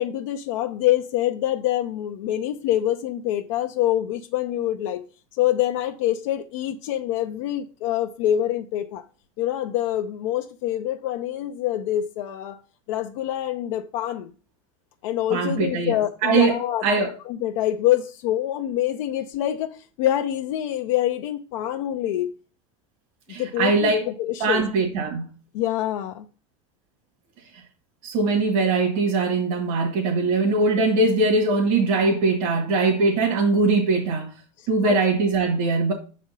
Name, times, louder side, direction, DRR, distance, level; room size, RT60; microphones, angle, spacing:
voice 1, 0.0-5.0 5.4-9.0 9.4-12.6 12.9-14.3 15.0-16.8 17.3-22.3 23.4-24.6 25.5-26.3 34.6-35.0, left 12 dB, 75° left, 0.6 m, -25 dB
voice 2, 15.3-16.0 16.2-16.5 16.8-17.1 23.3-24.1 24.4-25.3 28.0-34.3 34.7-35.9, right 3 dB, 70° right, 1.9 m, -21 dB
6.3 x 4.3 x 5.4 m
supercardioid pair, 130°, 16 cm